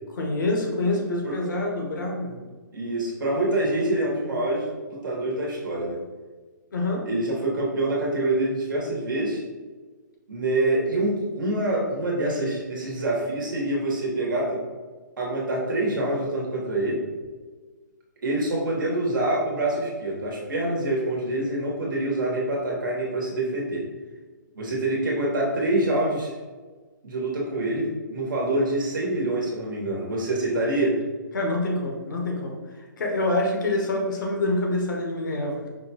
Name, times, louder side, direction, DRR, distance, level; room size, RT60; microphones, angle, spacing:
voice 1, 0.2-2.4 6.7-7.0 31.3-32.6 33.0-35.7, left 2 dB, 70° left, 1 dB, 1.0 m, -26 dB
voice 2, 2.7-6.0 7.1-9.4 10.3-14.6 15.2-17.0 18.2-23.9 24.5-26.3 27.0-31.0, right 1 dB, 75° right, -2 dB, 1.2 m, -26 dB
5.0 x 2.2 x 2.8 m, 1.4 s
hypercardioid pair, 145°, 11 cm